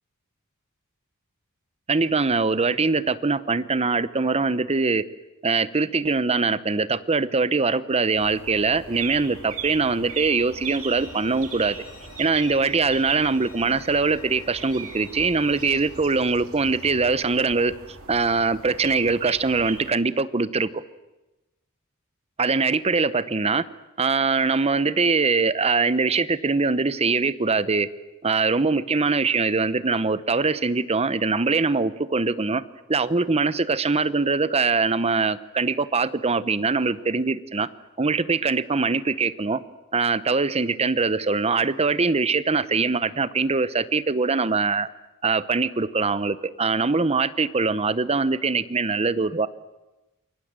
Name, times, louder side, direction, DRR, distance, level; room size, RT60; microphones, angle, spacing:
voice 1, 1.9-5.0 5.4-11.8 12.2-17.7 18.1-20.8 22.4-23.6 24.0-27.9 28.2-32.6 32.9-37.7 38.0-39.6 39.9-44.9 45.2-49.5, right 4 dB, 30° right, 15 dB, 0.8 m, -22 dB
sound 1, 8.1-19.9, right 6 dB, 70° right, 3.0 m, -39 dB
Bowed string instrument, 10.6-15.7, left 4 dB, 80° left, 5.5 m, -49 dB
28.0 x 22.5 x 7.5 m, 1.0 s
head